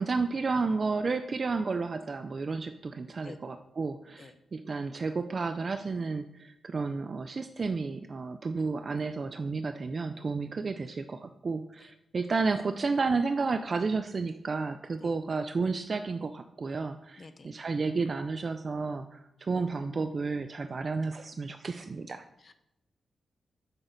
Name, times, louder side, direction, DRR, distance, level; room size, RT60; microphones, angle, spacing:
voice 1, 0.0-22.2, right 4 dB, 40° right, 8 dB, 0.4 m, -32 dB
voice 2, 17.2-17.5 22.4-22.5, left 3 dB, 40° left, 10 dB, 0.6 m, -49 dB
9.0 x 6.1 x 3.9 m, 0.85 s
wide cardioid pair, 140°, 0 cm